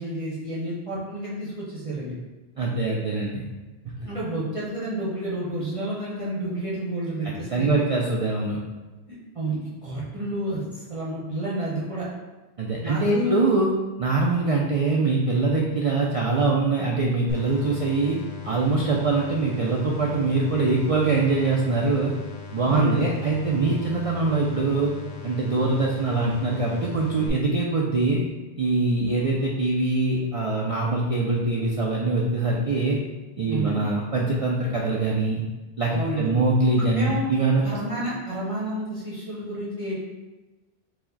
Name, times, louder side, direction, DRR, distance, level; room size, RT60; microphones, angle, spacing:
voice 1, 0.0-2.1 4.0-7.9 9.3-12.0 12.8-13.4 22.6-23.0 33.5-33.8 35.9-36.4 36.9-37.3 37.6-39.9, right 1 dB, 35° right, -8 dB, 0.8 m, -30 dB
voice 2, 2.6-3.4 7.2-8.6 12.6-13.7 14.0-18.2 18.4-22.1 22.5-24.9 25.2-28.2 28.6-33.0 33.4-35.4 35.8-37.6 37.9-38.0, right 3 dB, 65° right, -2 dB, 0.3 m, -23 dB
sound 1, 17.3-27.3, left 4 dB, 85° left, 0.9 m, -39 dB
4.6 x 2.1 x 3.9 m, 1.1 s
omnidirectional pair, 1.1 m